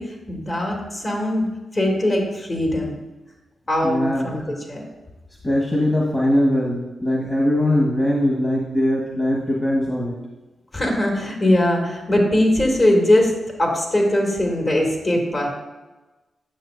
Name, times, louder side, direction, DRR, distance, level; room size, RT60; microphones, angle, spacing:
voice 1, 0.0-1.4 1.7-3.0 3.7-4.8 10.7-13.3 13.6-15.5, left 1 dB, 40° left, -1 dB, 2.4 m, -20 dB
voice 2, 3.8-4.3 5.4-10.2, left 1 dB, 15° left, -3 dB, 1.6 m, -21 dB
9.3 x 6.5 x 2.7 m, 1.1 s
supercardioid pair, 50°, 0 cm